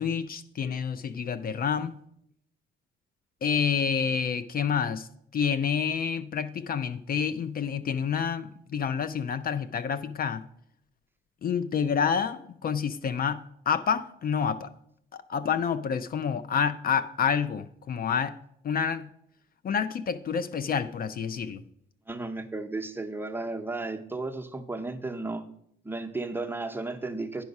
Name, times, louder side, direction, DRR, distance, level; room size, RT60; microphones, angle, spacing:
voice 1, 0.0-1.9 3.4-10.4 11.4-14.7 15.1-18.4 18.6-19.1 19.6-21.6, left 7 dB, 50° left, 13 dB, 0.5 m, -28 dB
voice 2, 22.1-25.4 25.8-27.4, right 2 dB, 10° right, 5 dB, 0.8 m, -34 dB
10.5 x 4.7 x 5.4 m, 0.72 s
cardioid pair, 90°, 20 cm